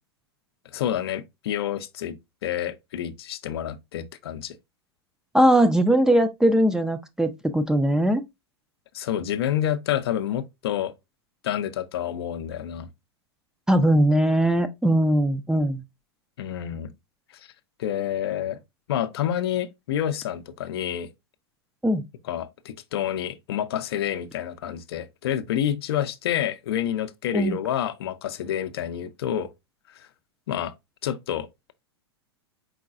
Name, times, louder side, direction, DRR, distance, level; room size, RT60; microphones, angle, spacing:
voice 1, 0.7-2.2 2.4-4.6 8.9-10.9 11.4-12.9 16.4-16.9 17.8-18.6 18.9-21.1 22.2-29.5 30.0-30.1 30.5-30.7 31.0-31.5, left 10 dB, 65° left, 0.5 m, -28 dB
voice 2, 5.3-8.2 13.7-15.8 21.8-22.0 27.3-27.6, right 1 dB, 5° right, 0.4 m, -20 dB
4.8 x 3.8 x 2.4 m
hypercardioid pair, 100°, 14 cm